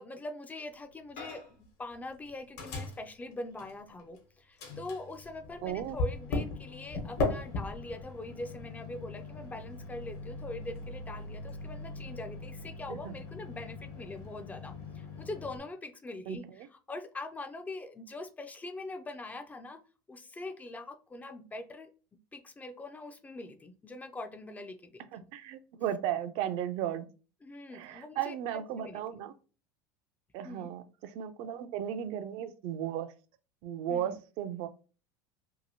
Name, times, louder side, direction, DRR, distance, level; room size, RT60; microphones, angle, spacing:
voice 1, 0.0-1.4 1.8-19.8 20.1-21.9 22.3-25.3 27.4-29.2 30.4-30.7 33.9-34.2, left 2 dB, 15° left, 8 dB, 0.3 m, -43 dB
Microwave oven, 1.2-1.7 1.9-4.2 4.6-15.6, left 3 dB, 65° left, 1.1 m, -39 dB
voice 2, 5.6-6.0 12.9-13.1 16.3-16.7 25.1-27.1 27.7-29.3 30.3-33.1 33.6-34.7, right 10 dB, 60° right, 12 dB, 0.4 m, -35 dB
2.8 x 2.6 x 2.7 m, 0.35 s
supercardioid pair, 110°, 11 cm